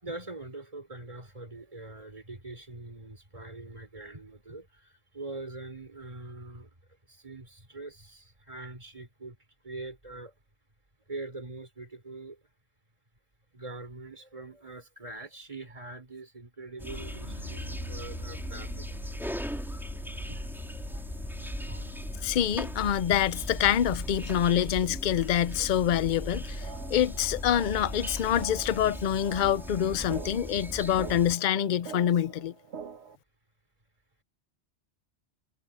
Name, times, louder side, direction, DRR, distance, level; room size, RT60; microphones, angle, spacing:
voice 1, 0.0-4.7 5.1-6.7 7.2-9.4 9.6-10.3 11.1-12.4 13.5-18.9 20.3-21.0 21.5-21.9 22.2-22.3 24.3-24.4, right 2 dB, 30° right, 4.3 m, -43 dB
sound 1, 16.8-31.4, equal, ahead, 4.2 m, -39 dB
sound 2, 16.9-29.6, left 2 dB, 70° left, 5.1 m, -42 dB
voice 2, 22.2-32.5, left 10 dB, 50° left, 0.6 m, -26 dB
sound 3, 26.2-33.2, right 6 dB, 75° right, 1.2 m, -46 dB
omnidirectional pair, 1.2 m